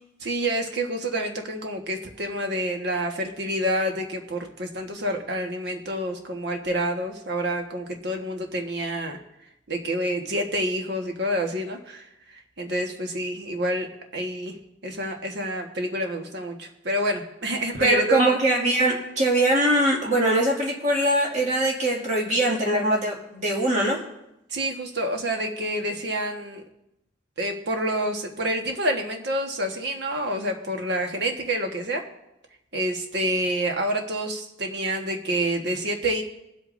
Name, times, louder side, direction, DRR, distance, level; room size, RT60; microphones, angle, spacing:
voice 1, 0.2-9.2 9.7-12.1 12.6-13.9 14.1-14.6 14.8-18.4 24.5-26.6 27.4-32.0 32.7-36.2, right 1 dB, 60° right, 4 dB, 1.4 m, -28 dB
voice 2, 17.8-24.0, right 1 dB, 40° right, -2 dB, 2.2 m, -22 dB
22.0 x 8.2 x 2.6 m, 0.87 s
head